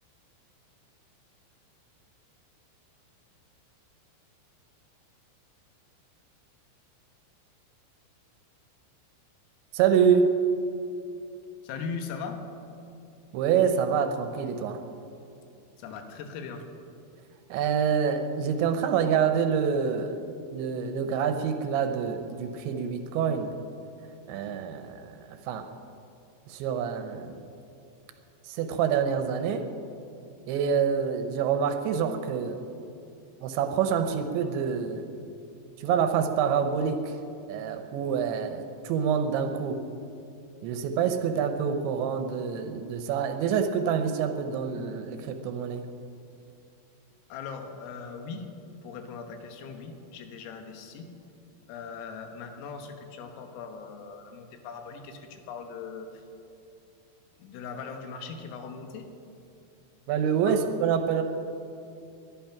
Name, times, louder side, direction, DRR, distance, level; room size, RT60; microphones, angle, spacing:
voice 1, 9.7-10.3 13.3-14.8 17.5-20.2 20.5-23.5 24.3-25.6 26.5-27.4 28.4-29.6 30.5-32.6 33.4-35.1 35.8-37.2 37.5-39.8 40.6-45.8 60.1-61.2, right 7 dB, 80° right, 7 dB, 2.8 m, -26 dB
voice 2, 11.6-12.4 15.8-16.6 47.3-48.5 48.8-51.1 51.7-56.2 57.4-59.1 60.5-60.6, left 5 dB, 80° left, 5 dB, 3.9 m, -39 dB
21.0 x 11.5 x 5.8 m, 2.6 s
omnidirectional pair, 6.0 m